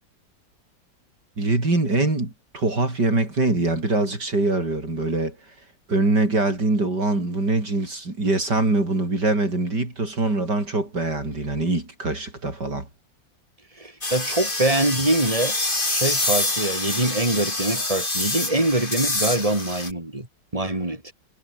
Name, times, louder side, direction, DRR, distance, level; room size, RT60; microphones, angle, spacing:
voice 1, 1.4-5.4 5.9-12.9, right 2 dB, 65° right, 6.5 m, -23 dB
voice 2, 13.8-15.6 15.9-20.3 20.5-21.1, right 1 dB, 20° right, 4.4 m, -24 dB
sound 1, 14.0-19.9, left 2 dB, 25° left, 4.0 m, -26 dB
omnidirectional pair, 2.0 m